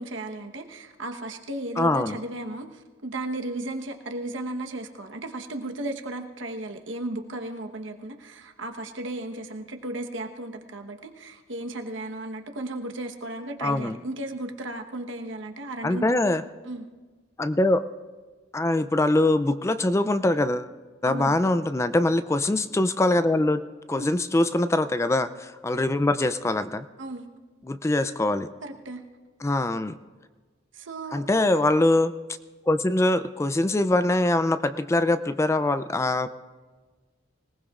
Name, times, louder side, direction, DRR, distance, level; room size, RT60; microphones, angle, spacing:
voice 1, 0.0-16.1 16.6-16.9 21.0-21.4 23.9-24.1 27.0-27.3 28.6-29.0 30.7-31.3, right 1 dB, 85° right, 4 dB, 1.1 m, -35 dB
voice 2, 1.8-2.2 13.6-14.0 15.8-16.4 17.4-17.8 18.5-20.7 21.0-23.6 23.9-26.8 27.6-28.5 29.4-29.9 31.1-32.1 32.7-36.3, left 2 dB, 15° left, 12 dB, 0.3 m, -23 dB
25.0 x 18.0 x 2.5 m, 1.3 s
head